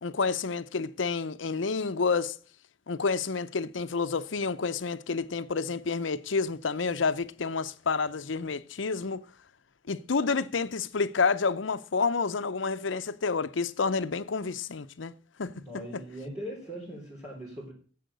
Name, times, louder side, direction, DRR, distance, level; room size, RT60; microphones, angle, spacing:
voice 1, 0.0-2.4 2.9-9.2 9.9-15.1 15.4-15.6, left 4 dB, 90° left, 0.7 m, -29 dB
voice 2, 15.4-17.7, equal, 20° right, 4.0 m, -40 dB
10.0 x 7.6 x 6.7 m
head